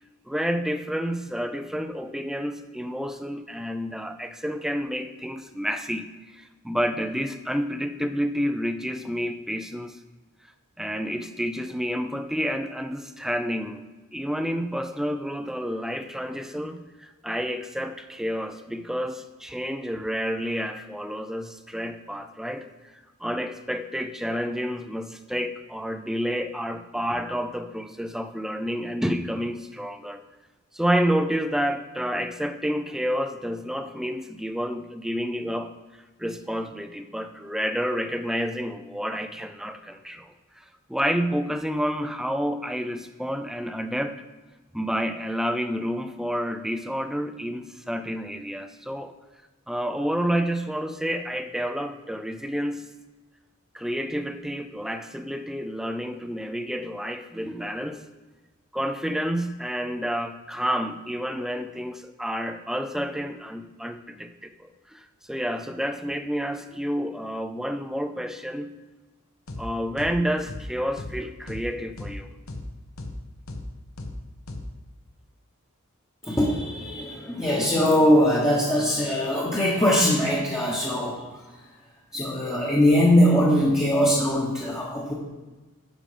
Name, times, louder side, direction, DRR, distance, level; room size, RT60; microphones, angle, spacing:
voice 1, 0.3-10.0 10.8-13.8 14.1-22.9 23.2-30.2 30.7-35.7 36.2-44.2 44.7-49.1 49.7-52.8 53.7-58.0 58.7-68.7 69.6-72.3, equal, ahead, 8 dB, 0.4 m, -29 dB
sound 1, 69.5-69.6 70.0-70.1 70.5-70.6 71.0-71.1 71.5-71.6 72.0-72.1 72.5-72.6 73.0-73.1 73.5-73.6 74.0-74.1 74.5-74.6, left 2 dB, 65° left, 1.0 m, -36 dB
voice 2, 76.2-81.2 82.1-85.1, equal, 15° left, -5 dB, 1.1 m, -21 dB
11.0 x 5.1 x 5.0 m, 1.2 s
head